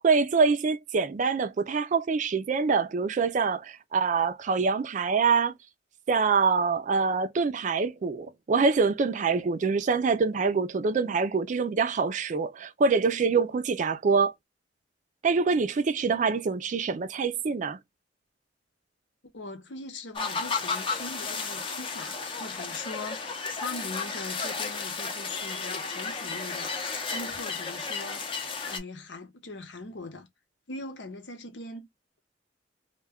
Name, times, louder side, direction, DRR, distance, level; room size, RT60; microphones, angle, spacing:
voice 1, 0.0-5.5 6.1-14.3 15.2-17.8, right 5 dB, 45° right, 0.4 m, -25 dB
voice 2, 19.3-26.7 27.1-28.4 28.7-30.3 30.7-31.9, left 2 dB, 85° left, 0.8 m, -41 dB
sound 1, 20.2-28.8, left 4 dB, 30° left, 0.6 m, -33 dB
2.2 x 2.2 x 3.4 m
head